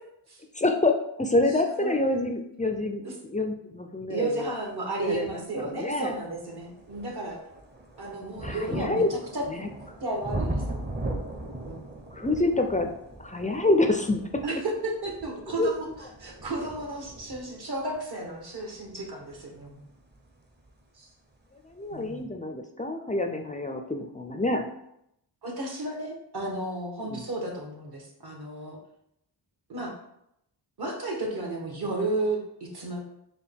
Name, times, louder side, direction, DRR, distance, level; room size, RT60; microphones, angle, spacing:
voice 1, 0.6-4.5 5.0-6.1 8.4-9.1 9.5-9.7 12.1-12.9 13.2-14.4 15.6-15.7 21.6-24.7 27.1-27.2, left 2 dB, 15° left, 5 dB, 0.4 m, -27 dB
voice 2, 1.8-2.2 3.0-3.1 4.1-7.4 8.0-9.4 10.0-11.0 11.7-11.8 14.4-15.9 16.2-19.8 20.9-21.1 21.9-22.3 25.4-28.8 29.7-29.9 30.8-33.0, right 2 dB, 55° right, 0 dB, 1.3 m, -33 dB
sound 1, 5.5-5.6 6.1-20.8 21.7-21.8, right 1 dB, 25° right, 0.7 m, -39 dB
4.7 x 2.2 x 3.5 m, 0.79 s
cardioid pair, 45°, 46 cm